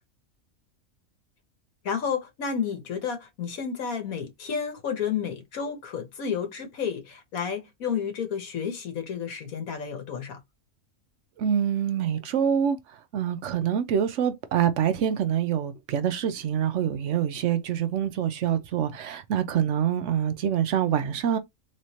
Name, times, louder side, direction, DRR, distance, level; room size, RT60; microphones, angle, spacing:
voice 1, 1.8-10.4, left 7 dB, 85° left, 1.5 m, -31 dB
voice 2, 11.4-21.4, right 9 dB, 65° right, 0.8 m, -26 dB
3.7 x 3.1 x 2.8 m
omnidirectional pair, 1.4 m